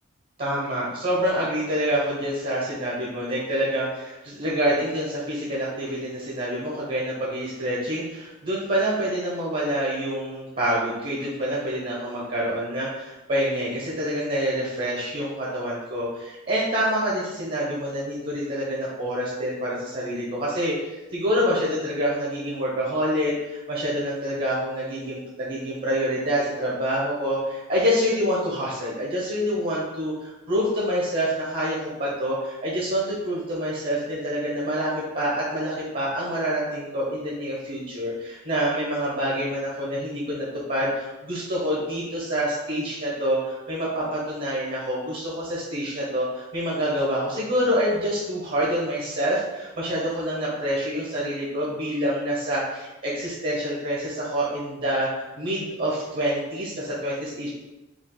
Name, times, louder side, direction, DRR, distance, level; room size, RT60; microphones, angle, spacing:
voice 1, 0.4-57.5, equal, 45° right, -6 dB, 1.0 m, -27 dB
4.9 x 2.4 x 3.8 m, 1.0 s
head